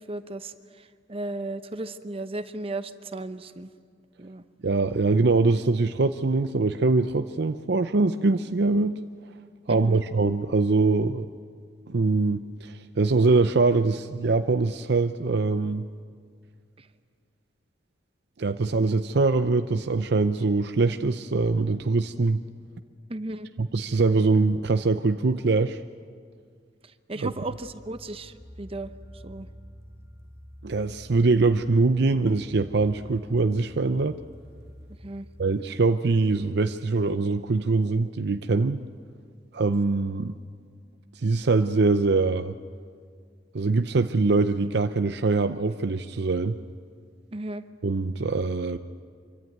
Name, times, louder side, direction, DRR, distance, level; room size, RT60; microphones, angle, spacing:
voice 1, 0.0-3.7 4.2-4.4 9.7-10.0 16.8-16.9 23.1-23.5 27.1-28.9 29.2-29.5 35.0-35.2 47.3-47.6, right 2 dB, 30° right, 10 dB, 0.8 m, -35 dB
voice 2, 4.6-9.0 9.7-11.3 11.9-15.9 18.4-22.4 23.6-25.8 27.2-27.3 30.6-34.2 35.4-38.8 39.5-40.4 41.1-42.6 43.5-46.6 47.8-48.8, right 3 dB, 65° right, 9 dB, 0.6 m, -23 dB
sound 1, 27.4-35.5, equal, 15° right, 1.9 m, -48 dB
26.0 x 24.0 x 9.4 m, 2.1 s
head